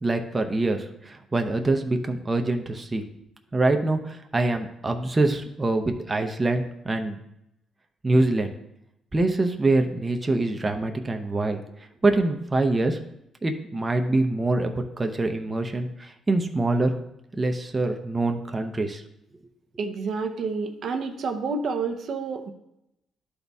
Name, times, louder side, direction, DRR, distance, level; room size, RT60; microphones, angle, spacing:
voice 1, 0.0-3.0 3.5-7.2 8.0-8.5 9.1-11.6 12.0-13.0 13.4-16.9 17.4-19.0, right 2 dB, 25° right, 5 dB, 0.7 m, -24 dB
voice 2, 19.8-22.5, right 4 dB, 65° right, 5 dB, 0.7 m, -29 dB
11.5 x 4.1 x 3.5 m, 0.83 s
cardioid pair, 90°, 0 cm